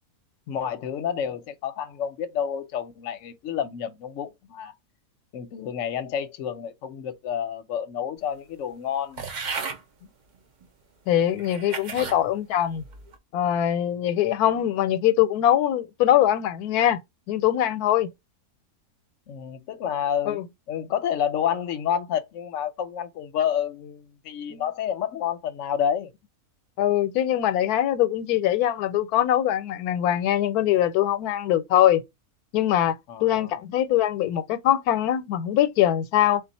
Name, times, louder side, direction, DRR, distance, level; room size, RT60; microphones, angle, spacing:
voice 1, 0.5-4.7 5.3-9.2 10.0-10.1 12.0-12.2 19.3-20.4 20.7-26.1 33.1-33.6, left 9 dB, 65° left, 0.9 m, -29 dB
sound 1, 9.2-9.8 10.6-10.7 11.4-12.2 12.8-13.2, right 4 dB, 50° right, 0.5 m, -34 dB
voice 2, 11.1-12.8 13.3-17.0 17.3-18.1 20.3-20.4 24.5-24.6 26.8-32.0 32.5-36.4, left 11 dB, 90° left, 1.1 m, -22 dB
3.8 x 2.3 x 4.0 m
omnidirectional pair, 1.6 m